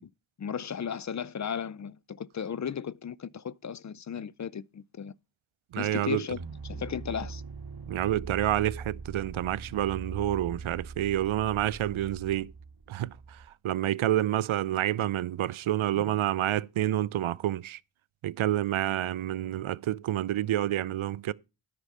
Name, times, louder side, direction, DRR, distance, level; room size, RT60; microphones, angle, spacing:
voice 1, 0.4-5.1 5.8-7.4 15.9-16.1, left 7 dB, 40° left, 0.4 m, -35 dB
voice 2, 5.7-6.2 7.9-12.5 12.9-17.8 18.2-21.3, right 13 dB, 80° right, 0.6 m, -28 dB
sound 1, 6.3-13.5, right 4 dB, 50° right, 1.6 m, -42 dB
9.9 x 6.0 x 5.4 m
cardioid pair, 50°, 48 cm